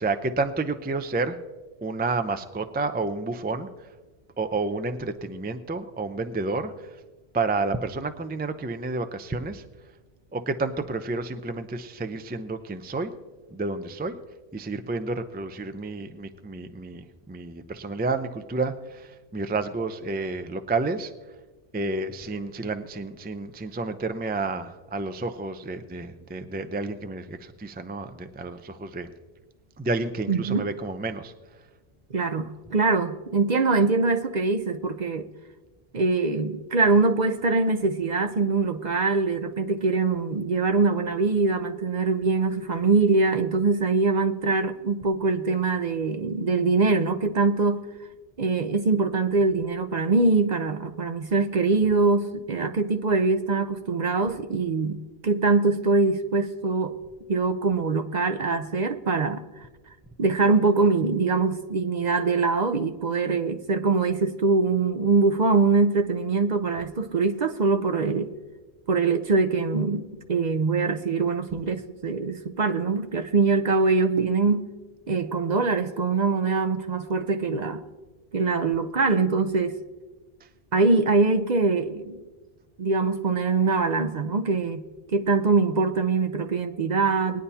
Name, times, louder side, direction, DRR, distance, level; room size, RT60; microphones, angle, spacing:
voice 1, 0.0-1.4 1.8-3.9 4.4-6.9 7.3-9.6 10.3-13.1 13.5-14.2 14.5-21.1 21.7-29.1 29.8-31.3, right 3 dB, 15° right, 9 dB, 0.4 m, -30 dB
voice 2, 30.3-30.7 32.1-35.3 35.9-47.8 48.4-55.0 55.2-56.9 57.3-59.7 60.2-68.3 68.9-74.7 75.1-77.8 78.3-79.7 80.7-82.2 82.8-87.4, right 4 dB, 50° right, 6 dB, 0.7 m, -23 dB
20.0 x 10.0 x 2.8 m, 1.3 s
omnidirectional pair, 1.1 m